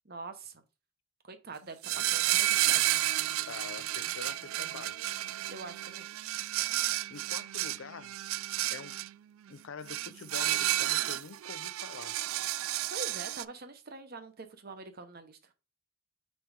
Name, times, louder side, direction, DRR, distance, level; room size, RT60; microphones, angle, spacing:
voice 1, 0.0-0.6 1.2-3.0 5.5-6.1 12.9-15.4, right 3 dB, 45° right, 0.9 m, -45 dB
sound 1, 1.8-9.1 9.9-13.4, right 16 dB, 75° right, 0.3 m, -31 dB
voice 2, 3.5-5.0 7.1-8.2 8.7-9.0 9.5-12.2, left 5 dB, 70° left, 0.5 m, -45 dB
4.5 x 4.3 x 5.0 m
head